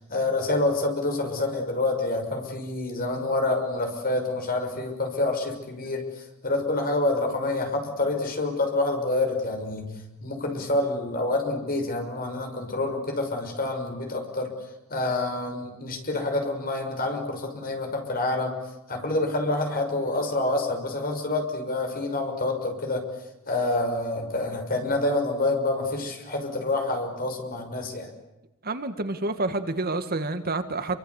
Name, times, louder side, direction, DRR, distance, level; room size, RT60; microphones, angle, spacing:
voice 1, 0.0-9.9 10.2-14.5 14.9-18.6 18.9-23.0 23.5-28.1, left 2 dB, 40° left, 4 dB, 6.0 m, -27 dB
voice 2, 28.6-31.0, right 2 dB, 45° right, 9 dB, 1.8 m, -28 dB
28.5 x 24.5 x 8.2 m, 0.98 s
head